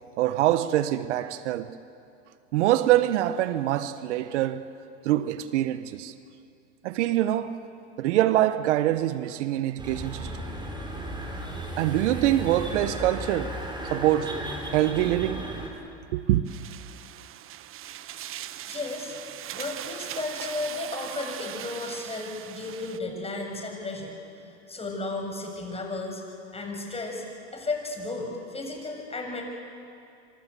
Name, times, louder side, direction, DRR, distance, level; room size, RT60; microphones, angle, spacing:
voice 1, 0.2-1.8 2.5-4.7 5.0-6.1 6.8-7.6 8.0-10.4 11.8-13.6 13.9-14.4 14.7-15.5 16.1-16.4, right 14 dB, 75° right, 1.3 m, -24 dB
sound 1, 9.8-15.7, right 1 dB, 15° right, 6.1 m, -35 dB
sound 2, 16.5-23.0, right 12 dB, 35° right, 1.0 m, -40 dB
voice 2, 18.7-19.2 19.5-26.2 26.5-27.3 27.5-29.4, left 2 dB, 15° left, 7.1 m, -34 dB
27.0 x 25.5 x 8.4 m
hypercardioid pair, 100°, 35 cm